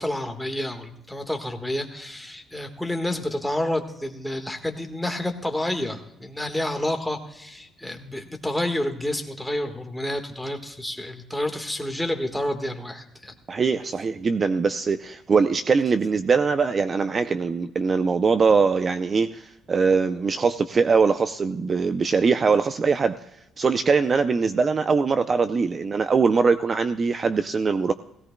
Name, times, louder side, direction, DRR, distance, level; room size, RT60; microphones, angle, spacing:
voice 1, 0.0-13.3, left 1 dB, 5° left, 5 dB, 1.5 m, -29 dB
voice 2, 13.5-23.2 23.6-27.9, right 5 dB, 35° right, 11 dB, 0.5 m, -22 dB
17.5 x 16.5 x 2.2 m, 0.83 s
cardioid pair, 115°, 0 cm